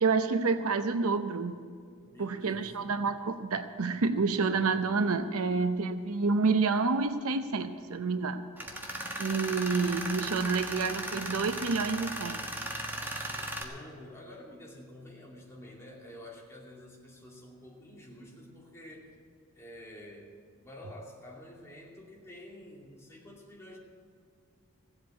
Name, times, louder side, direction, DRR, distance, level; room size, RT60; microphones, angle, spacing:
voice 1, 0.0-1.5 2.2-8.4 9.2-12.4, right 4 dB, 70° right, 9 dB, 0.7 m, -28 dB
voice 2, 2.0-3.0 13.1-19.1 19.5-23.8, left 1 dB, 15° left, -3 dB, 2.5 m, -49 dB
Tools, 8.6-13.6, right 1 dB, 10° right, 1.4 m, -37 dB
16.0 x 8.1 x 8.2 m, 2.1 s
head